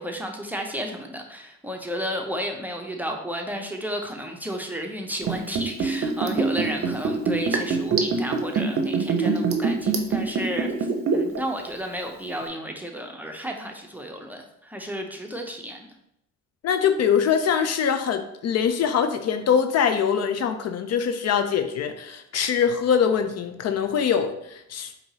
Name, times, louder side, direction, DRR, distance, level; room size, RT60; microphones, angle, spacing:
voice 1, 0.0-15.9, equal, 5° right, 2 dB, 0.5 m, -32 dB
Liquid, 5.2-11.4 11.7-11.8, right 5 dB, 50° right, 0.6 m, -23 dB
voice 2, 16.6-25.0, left 7 dB, 60° left, 8 dB, 0.4 m, -23 dB
4.5 x 2.7 x 2.8 m, 0.79 s
cardioid pair, 90°, 30 cm